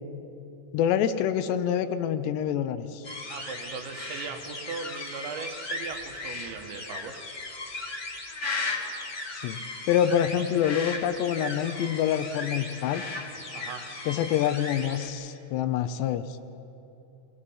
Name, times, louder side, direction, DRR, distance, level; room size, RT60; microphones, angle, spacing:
voice 1, 0.7-3.0 9.3-9.6 9.9-13.0 14.1-16.3, left 9 dB, 80° left, 10 dB, 2.7 m, -26 dB
sound 1, 3.0-15.1, left 3 dB, 35° left, 1.9 m, -36 dB
voice 2, 3.3-7.2 13.5-13.9, right 5 dB, 80° right, 5 dB, 3.6 m, -39 dB
25.5 x 19.0 x 5.6 m, 2.8 s
omnidirectional pair, 5.2 m